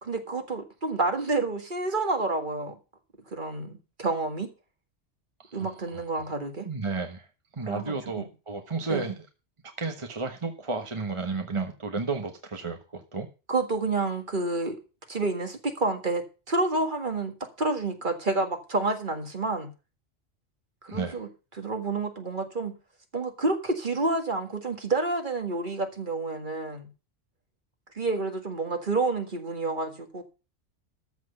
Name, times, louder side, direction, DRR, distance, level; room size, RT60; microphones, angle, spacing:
voice 1, 0.0-2.8 3.3-4.5 5.5-6.7 7.6-8.3 8.9-9.1 13.5-14.8 15.1-19.7 20.8-21.3 21.5-22.7 23.1-26.9 27.9-30.2, right 3 dB, 45° right, 1.9 m, -29 dB
voice 2, 6.6-7.3 7.5-9.1 9.8-13.3 20.9-21.2, right 3 dB, 25° right, 1.2 m, -32 dB
13.5 x 6.0 x 6.9 m
omnidirectional pair, 1.2 m